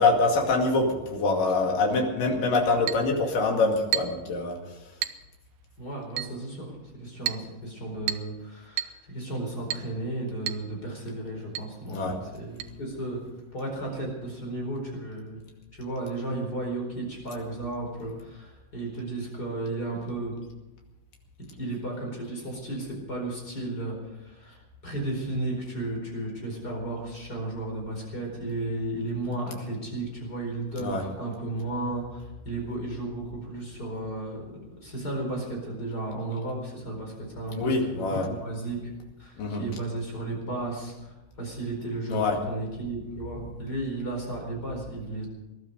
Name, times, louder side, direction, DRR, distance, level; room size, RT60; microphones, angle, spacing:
voice 1, 0.0-4.6 11.9-12.1 30.8-31.0 37.6-38.3 39.4-39.7 42.1-42.4, left 3 dB, 80° left, 1 dB, 4.0 m, -24 dB
Chink clink, 2.9-3.1 3.9-4.2 5.0-5.2 6.2-6.4 7.3-7.5 8.1-8.3 8.8-9.0 9.7-9.9 10.5-10.7 10.9-11.0 11.5-11.7 12.6-12.7, right 12 dB, 75° right, 2.1 m, -31 dB
voice 2, 5.8-13.2 13.5-15.4 15.8-20.3 21.6-24.6 24.8-34.4 34.8-38.8 39.2-45.3, right 2 dB, 30° left, 0 dB, 4.9 m, -34 dB
21.0 x 12.0 x 5.4 m, 1.0 s
omnidirectional pair, 3.8 m